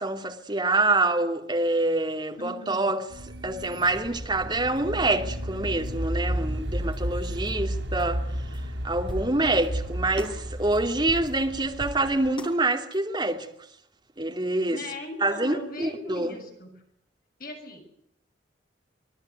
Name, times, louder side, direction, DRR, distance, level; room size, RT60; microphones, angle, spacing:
voice 1, 0.0-3.0 3.4-8.2 8.8-13.5 14.2-14.8 15.2-16.4, right 2 dB, 25° right, 2.7 m, -26 dB
voice 2, 2.4-2.9 14.7-16.8 17.4-17.8, left 1 dB, 50° left, 7.6 m, -39 dB
sound 1, 3.1-12.3, equal, 75° right, 6.6 m, -33 dB
sound 2, 4.8-4.9 5.8-5.9 6.9-7.0 7.5-7.6 8.0-8.1 8.5-8.6 9.1-9.7 10.2-10.4 10.7-10.8 11.1-11.5 11.8-12.6 12.9-13.0, equal, 25° left, 6.4 m, -39 dB
25.5 x 20.0 x 9.6 m
head